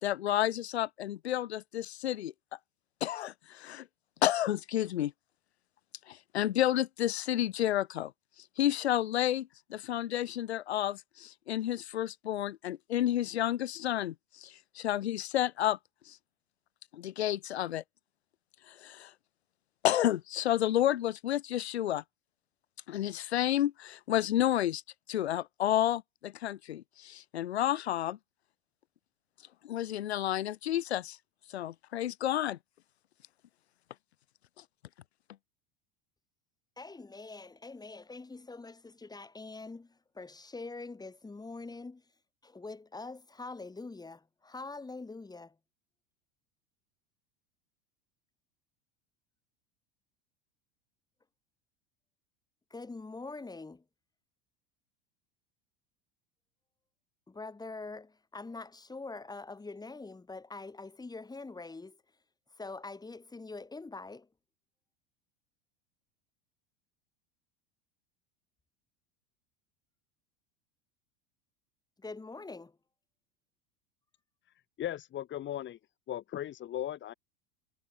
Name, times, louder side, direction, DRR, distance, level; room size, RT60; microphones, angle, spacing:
voice 1, 0.0-2.3 3.0-3.9 4.2-5.1 6.1-8.1 8.6-15.8 16.1-16.2 16.9-17.8 18.7-19.1 19.8-22.0 22.9-24.8 25.1-28.2 29.6-31.2 31.5-32.6, left 12 dB, 90° left, 2.7 m, -31 dB
voice 2, 36.8-42.1 42.4-45.6 52.7-53.8 57.3-62.0 62.5-64.3 72.0-72.8, left 3 dB, 10° left, 4.0 m, -44 dB
voice 3, 74.8-75.8 76.1-77.1, left 12 dB, 35° left, 1.5 m, -37 dB
hypercardioid pair, 100°, 32 cm